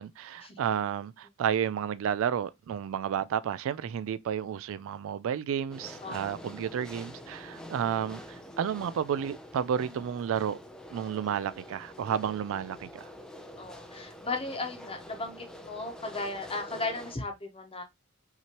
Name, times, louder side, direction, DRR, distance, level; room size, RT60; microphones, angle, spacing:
voice 1, 0.0-10.6 10.9-13.1, right 8 dB, 65° right, 0.3 m, -31 dB
sound 1, 5.7-17.2, equal, 5° left, 0.5 m, -46 dB
voice 2, 6.0-6.4 7.5-7.6 9.9-10.0 13.6-17.8, left 3 dB, 25° left, 1.1 m, -36 dB
5.7 x 2.9 x 3.0 m
head